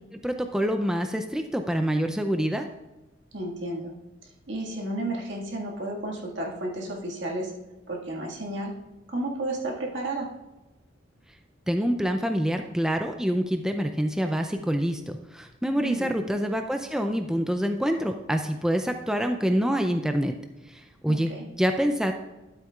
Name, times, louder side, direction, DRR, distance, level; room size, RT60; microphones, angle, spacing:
voice 1, 0.1-2.7 11.7-20.3 20.7-21.3 21.6-22.1, equal, 5° right, 5 dB, 0.4 m, -26 dB
voice 2, 3.3-3.9 4.2-7.5 7.9-8.7 9.1-10.3 15.8-16.1 21.1-21.5, right 1 dB, 70° right, -1 dB, 1.9 m, -32 dB
12.5 x 8.1 x 2.4 m, 1.1 s
head